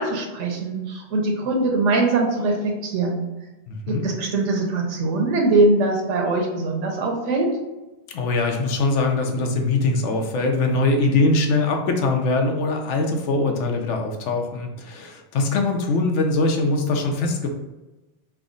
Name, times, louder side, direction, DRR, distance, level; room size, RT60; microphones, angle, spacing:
voice 1, 0.0-3.2 3.9-7.5, right 2 dB, 85° right, 1 dB, 1.1 m, -22 dB
voice 2, 3.7-4.0 8.1-17.5, left 3 dB, 85° left, 3 dB, 0.9 m, -22 dB
3.5 x 2.1 x 3.7 m, 1.1 s
omnidirectional pair, 1.2 m